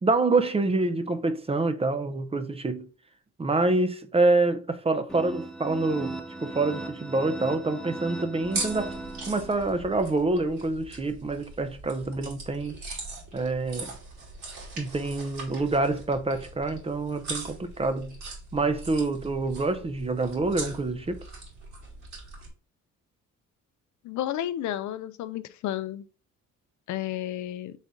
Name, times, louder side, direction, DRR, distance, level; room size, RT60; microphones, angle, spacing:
voice 1, 0.0-2.9 3.4-8.9 9.2-12.8 13.3-13.9 14.8-18.2 18.5-21.2, right 3 dB, 20° right, 0.5 m, -26 dB
sound 1, 5.1-9.8, right 2 dB, ahead, 0.9 m, -38 dB
sound 2, 8.4-22.5, right 3 dB, 65° right, 2.5 m, -40 dB
voice 2, 24.0-26.0 26.9-27.7, left 12 dB, 75° left, 0.5 m, -32 dB
4.1 x 3.7 x 3.5 m
cardioid pair, 90°, 30 cm